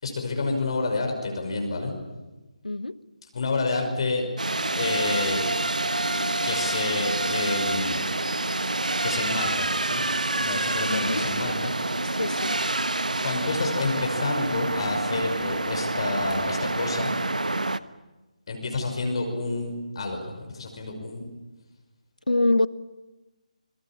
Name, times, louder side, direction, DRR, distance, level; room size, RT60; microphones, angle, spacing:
voice 1, 0.0-1.9 3.3-4.3 4.8-5.4 6.4-8.0 9.0-10.0 10.4-11.7 13.2-17.1 18.5-21.3, left 3 dB, 45° left, 3 dB, 5.8 m, -29 dB
voice 2, 2.6-3.0 10.9-11.2 12.2-12.6 22.3-22.7, left 2 dB, 80° left, 17 dB, 1.1 m, -24 dB
sound 1, 4.4-17.8, right 2 dB, 75° right, 1.2 m, -27 dB
28.0 x 23.5 x 7.5 m, 1.1 s
figure-of-eight pair, 155°, 4 cm